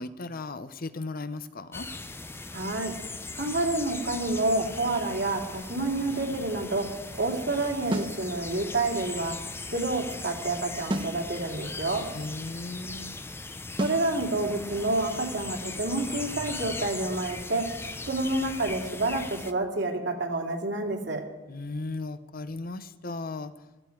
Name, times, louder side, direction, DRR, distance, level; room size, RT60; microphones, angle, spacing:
voice 1, 0.0-1.9 12.1-13.2 21.5-23.5, left 3 dB, 50° left, 13 dB, 0.8 m, -36 dB
sound 1, 1.7-19.5, left 3 dB, 15° left, 0.6 m, -39 dB
voice 2, 2.5-2.9 3.3-6.8 7.1-9.4 9.7-12.0 13.8-17.6 18.1-21.2, right 2 dB, 65° right, 1 dB, 2.6 m, -28 dB
sound 2, 7.9-8.2 10.9-11.2 13.8-14.1, right 1 dB, 25° right, 0.9 m, -30 dB
Car / Accelerating revving vroom, 15.8-17.5, right 1 dB, 85° right, 2.3 m, -48 dB
15.0 x 14.5 x 4.7 m, 1.1 s
head